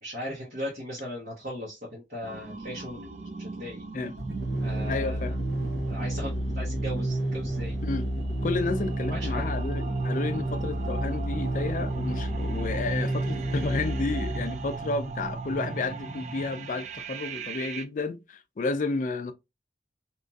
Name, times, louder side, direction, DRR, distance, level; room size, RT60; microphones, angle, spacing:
voice 1, 0.0-3.0 3.4-3.8 4.6-5.4 5.9-7.8 9.1-9.5, left 1 dB, 55° right, 1.0 m, -38 dB
sound 1, 2.2-17.8, right 5 dB, 40° right, 0.3 m, -41 dB
sound 2, 4.2-14.9, right 1 dB, 85° right, 0.9 m, -30 dB
voice 2, 4.9-5.4 7.8-8.1 8.4-19.3, left 3 dB, 45° left, 0.4 m, -31 dB
2.9 x 2.6 x 2.3 m
head